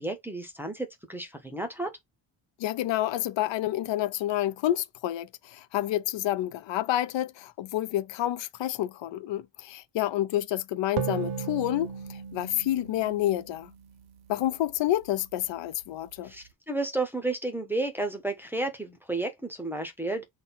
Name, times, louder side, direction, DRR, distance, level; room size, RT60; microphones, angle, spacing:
voice 1, 0.0-1.9 16.2-20.2, right 2 dB, 5° right, 0.7 m, -32 dB
voice 2, 2.6-13.7 14.3-16.3, left 13 dB, 70° left, 0.6 m, -29 dB
sound 1, 11.0-14.4, right 7 dB, 55° right, 0.6 m, -36 dB
4.0 x 2.3 x 3.9 m
cardioid pair, 170°, 46 cm